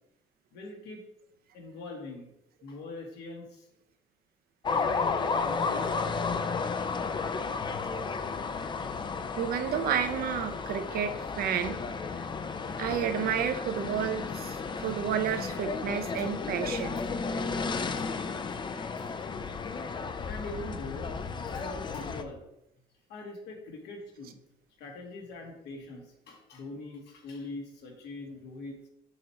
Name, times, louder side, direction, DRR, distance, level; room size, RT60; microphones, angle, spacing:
voice 1, 0.5-1.0 1.5-2.3 2.6-3.7 4.7-5.9 16.1-16.2 16.8-16.9 18.0-18.1 20.3-22.4 23.1-24.4 24.8-28.8, left 2 dB, 75° left, 1 dB, 1.8 m, -42 dB
sound 1, 4.6-22.2, left 4 dB, 30° left, 0.5 m, -33 dB
voice 2, 9.3-11.8 12.2-12.3 12.8-17.0, right 8 dB, 60° right, 9 dB, 0.7 m, -31 dB
6.5 x 3.1 x 5.8 m, 0.82 s
cardioid pair, 110°, 17 cm